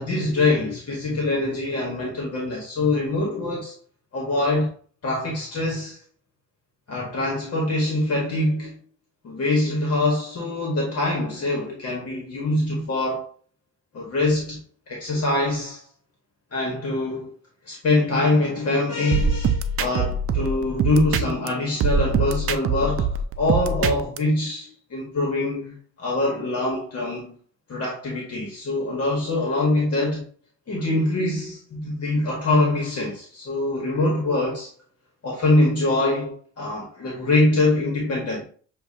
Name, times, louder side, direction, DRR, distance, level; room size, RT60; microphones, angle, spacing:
voice 1, 0.0-3.7 4.1-4.7 5.0-6.0 6.9-8.8 9.2-13.3 13.9-15.8 16.5-17.3 17.6-27.3 27.7-30.3 30.7-34.7 35.2-38.5, left 2 dB, 55° left, 1.4 m, -24 dB
sound 1, 19.1-21.5 21.8-24.2, right 5 dB, 50° right, 0.5 m, -23 dB
6.9 x 2.6 x 2.8 m
cardioid pair, 90°, 30 cm